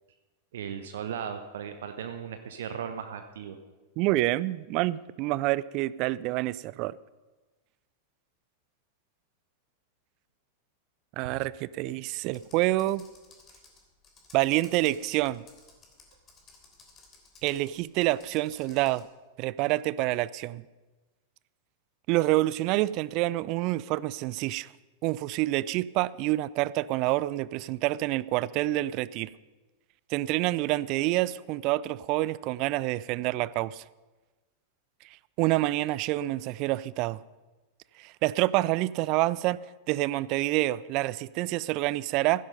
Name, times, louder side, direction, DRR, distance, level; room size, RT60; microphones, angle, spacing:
voice 1, 0.5-3.6 11.2-11.4, right 8 dB, 60° right, 8 dB, 0.9 m, -37 dB
voice 2, 4.0-7.0 11.2-13.0 14.3-15.4 17.4-19.1 19.4-20.6 22.1-24.7 25.0-29.3 30.1-33.8 35.4-37.2 38.0-39.6 39.9-42.4, right 17 dB, 40° right, 20 dB, 0.4 m, -27 dB
Computer keyboard, 12.3-19.1, left 4 dB, 25° left, 3.3 m, -56 dB
16.0 x 10.5 x 5.3 m, 1.2 s
figure-of-eight pair, 90°, 0 cm